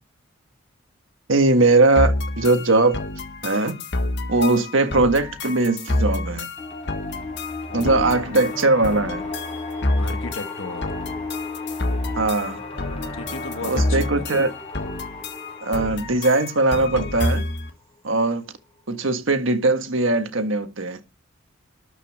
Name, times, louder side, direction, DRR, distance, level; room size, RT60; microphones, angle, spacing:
voice 1, 1.3-3.0 3.4-3.8 4.3-6.5 7.7-9.2 12.1-12.6 13.6-14.5 15.6-17.4 18.0-18.4 18.9-21.0, right 2 dB, 70° right, 1.6 m, -20 dB
sound 1, 2.0-17.7, left 2 dB, 55° left, 1.5 m, -28 dB
sound 2, 4.7-5.3 7.7-19.0, left 3 dB, 10° left, 3.8 m, -45 dB
sound 3, 6.6-15.9, left 2 dB, 30° left, 4.0 m, -35 dB
voice 2, 7.7-8.1 10.0-10.9 13.2-14.4, left 3 dB, 85° left, 1.3 m, -35 dB
12.5 x 5.6 x 7.2 m
head